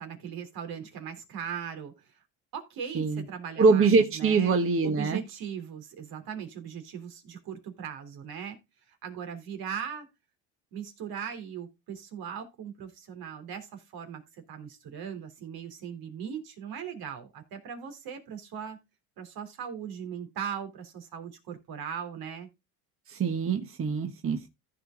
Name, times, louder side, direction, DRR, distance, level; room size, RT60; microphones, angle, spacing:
voice 1, 0.0-2.1 2.5-4.5 4.8-8.6 8.9-10.1 10.7-18.8 19.2-22.5, right 8 dB, 65° right, 3.4 m, -39 dB
voice 2, 3.6-5.2 23.1-24.5, right 4 dB, 35° right, 1.4 m, -24 dB
15.0 x 5.0 x 3.8 m
cardioid pair, 110°, 39 cm